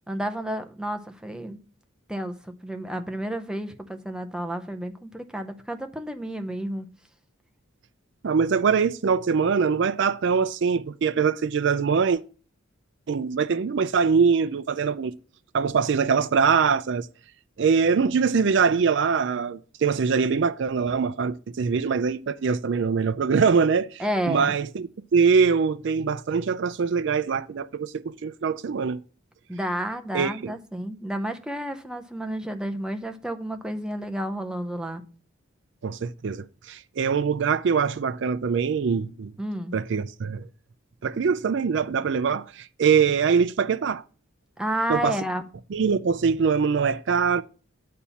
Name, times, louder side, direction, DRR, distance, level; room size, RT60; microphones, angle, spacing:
voice 1, 0.1-1.6 2.1-6.9 24.0-24.5 29.5-35.0 39.4-39.8 44.6-45.5, right 1 dB, 5° right, 0.7 m, -31 dB
voice 2, 8.2-12.2 13.1-15.1 15.5-17.1 17.6-29.0 30.1-30.5 35.8-39.3 39.7-40.5 41.0-44.0 44.9-45.2 45.7-47.4, right 6 dB, 60° right, 0.4 m, -23 dB
8.7 x 4.2 x 7.0 m
head